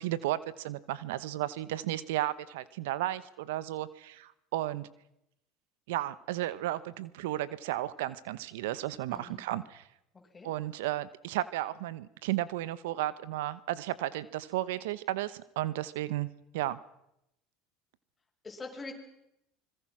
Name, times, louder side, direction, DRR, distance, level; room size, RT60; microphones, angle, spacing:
voice 1, 0.0-4.9 5.9-9.8 10.4-16.8, right 14 dB, 80° right, 17 dB, 1.0 m, -34 dB
voice 2, 9.1-9.4 10.3-10.5 18.4-18.9, left 3 dB, 20° left, 1 dB, 6.6 m, -43 dB
25.5 x 21.5 x 6.2 m, 0.83 s
hypercardioid pair, 85°, 0 cm